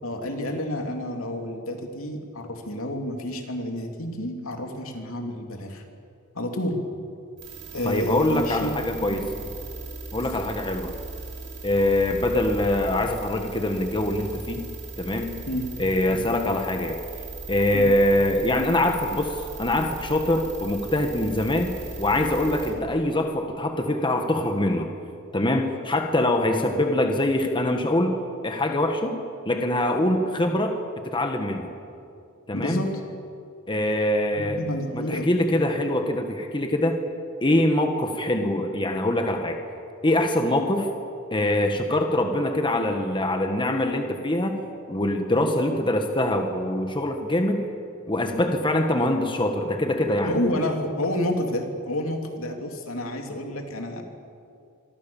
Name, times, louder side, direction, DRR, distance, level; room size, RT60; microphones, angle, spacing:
voice 1, 0.0-5.8 6.3-6.8 7.7-8.7 9.0-9.5 15.5-15.7 16.1-16.2 17.7-17.9 32.5-32.9 34.4-35.3 50.2-54.0, left 1 dB, 75° left, 3 dB, 3.3 m, -29 dB
sound 1, 7.4-22.7, right 3 dB, 60° right, 7.3 m, -38 dB
voice 2, 7.8-9.2 10.1-10.9 11.6-14.7 15.0-15.4 15.8-17.0 17.5-24.9 25.3-28.2 28.4-31.7 32.5-32.8 33.7-34.6 34.9-37.0 37.4-39.6 40.0-40.9 41.3-44.6 44.9-47.6 48.1-50.3, left 1 dB, 25° left, 4 dB, 1.6 m, -24 dB
26.5 x 24.0 x 7.3 m, 2.5 s
head